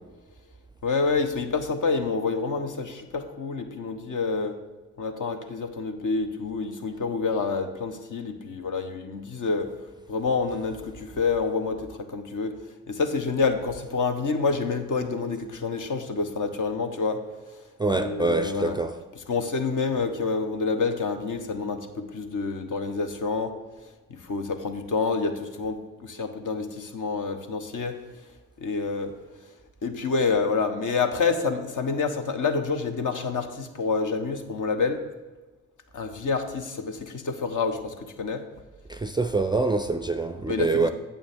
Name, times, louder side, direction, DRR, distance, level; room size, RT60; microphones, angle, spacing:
voice 1, 0.8-4.5 5.0-9.7 10.1-12.5 12.9-17.2 17.9-18.8 19.2-23.5 24.1-28.0 28.6-29.1 29.8-35.0 35.9-38.4 40.4-40.9, left 4 dB, 55° left, 1.1 m, -28 dB
voice 2, 17.8-18.9 38.9-40.9, right 3 dB, 10° right, 0.4 m, -25 dB
8.8 x 6.9 x 3.6 m
hypercardioid pair, 40°, 38 cm